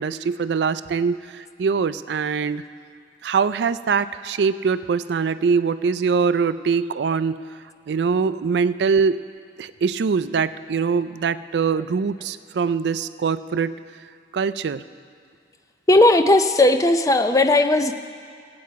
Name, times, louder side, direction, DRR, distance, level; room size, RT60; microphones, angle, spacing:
voice 1, 0.0-2.6 3.2-7.5 7.9-9.2 9.6-13.8 14.3-14.8, right 5 dB, 75° right, 13 dB, 0.4 m, -23 dB
voice 2, 15.9-17.9, left 2 dB, 20° left, 9 dB, 0.5 m, -16 dB
18.0 x 8.7 x 4.7 m, 2.2 s
head